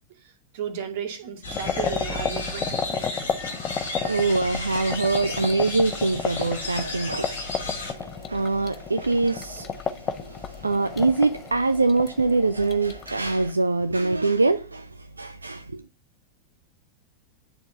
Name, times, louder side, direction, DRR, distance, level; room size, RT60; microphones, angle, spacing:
voice 1, 0.2-3.3 9.5-9.6, right 8 dB, 50° right, 2.5 m, -35 dB
sound 1, 1.4-7.9, left 1 dB, 70° left, 4.7 m, -34 dB
sound 2, 1.5-13.5, left 7 dB, 25° left, 1.2 m, -33 dB
voice 2, 3.4-15.8, right 3 dB, 80° right, 0.8 m, -24 dB
11.0 x 7.2 x 6.1 m
figure-of-eight pair, 90°, 0 cm